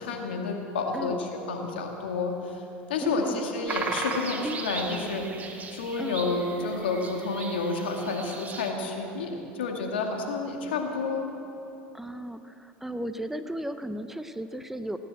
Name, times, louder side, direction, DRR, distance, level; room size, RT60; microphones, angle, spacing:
voice 1, 0.0-2.6 2.9-5.3 5.7-11.3, left 3 dB, 90° left, 2 dB, 2.1 m, -30 dB
voice 2, 3.0-3.4 4.4-4.6 6.0-6.2 11.9-15.0, right 1 dB, 5° right, 10 dB, 0.7 m, -35 dB
sound 1, 3.7-8.7, right 4 dB, 30° right, 2.0 m, -36 dB
17.5 x 10.0 x 7.7 m, 3.0 s
hypercardioid pair, 95°, 6 cm